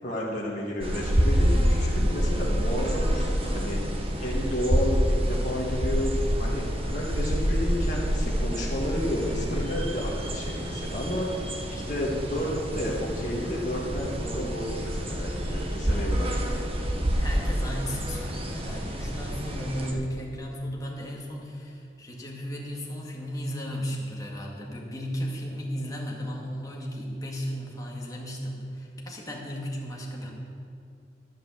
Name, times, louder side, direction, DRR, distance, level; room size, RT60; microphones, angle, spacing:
voice 1, 0.0-3.8 4.2-6.1 6.4-11.4 11.7-16.8, equal, 45° left, -5 dB, 1.7 m, -31 dB
sound 1, 0.8-19.9, equal, 35° right, 1.2 m, -27 dB
voice 2, 17.2-30.3, equal, 20° left, -2 dB, 2.0 m, -35 dB
11.5 x 7.3 x 7.3 m, 2.5 s
head